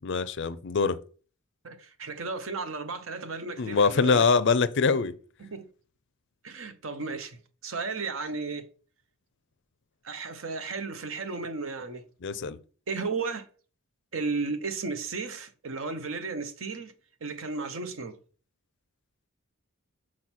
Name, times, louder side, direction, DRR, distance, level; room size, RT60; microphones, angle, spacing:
voice 1, 0.0-1.0 3.6-5.1 12.2-12.6, left 4 dB, 55° left, 0.5 m, -24 dB
voice 2, 1.6-4.3 5.4-5.7 6.4-8.7 10.0-12.0 12.9-13.5 14.1-16.9 17.2-18.2, right 4 dB, 60° right, 0.8 m, -34 dB
6.3 x 4.4 x 4.3 m
head